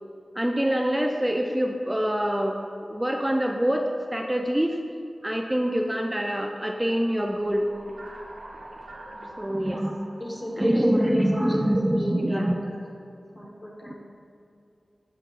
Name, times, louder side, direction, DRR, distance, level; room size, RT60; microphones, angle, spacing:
voice 1, 0.4-2.6 2.9-3.9 4.1-4.8 5.2-7.7 9.4-10.0 10.6-12.5 13.9-14.0, equal, 15° right, 3 dB, 0.4 m, -25 dB
sound 1, 7.2-11.9, right 1 dB, 75° right, 0.8 m, -45 dB
voice 2, 10.2-12.8 13.3-13.9, equal, 35° left, -2 dB, 1.2 m, -35 dB
7.7 x 5.7 x 2.5 m, 2.5 s
cardioid pair, 45°, 0 cm